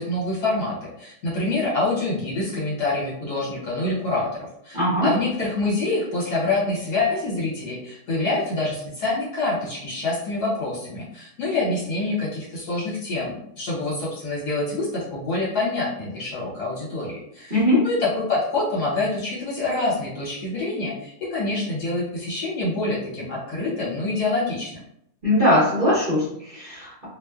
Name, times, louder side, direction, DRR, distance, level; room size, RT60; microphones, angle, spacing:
voice 1, 0.0-24.7, left 2 dB, 70° left, -5 dB, 1.4 m, -26 dB
voice 2, 4.7-5.1 17.5-17.8 25.2-27.1, left 1 dB, 40° right, -10 dB, 0.8 m, -20 dB
2.8 x 2.1 x 2.3 m, 0.74 s
omnidirectional pair, 1.8 m